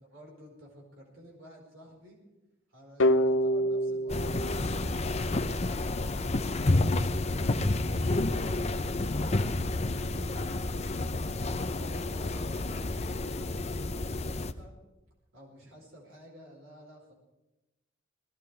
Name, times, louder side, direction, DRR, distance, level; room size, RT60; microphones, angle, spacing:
voice 1, 0.0-2.2 2.7-6.6 7.2-7.5 7.8-14.7 15.3-17.1, equal, 90° right, -2 dB, 4.8 m, -52 dB
sound 1, 3.0-5.8, equal, 70° left, 0.8 m, -28 dB
sound 2, 4.1-14.5, left 2 dB, 35° left, 0.7 m, -30 dB
20.5 x 16.5 x 3.5 m, 1.0 s
head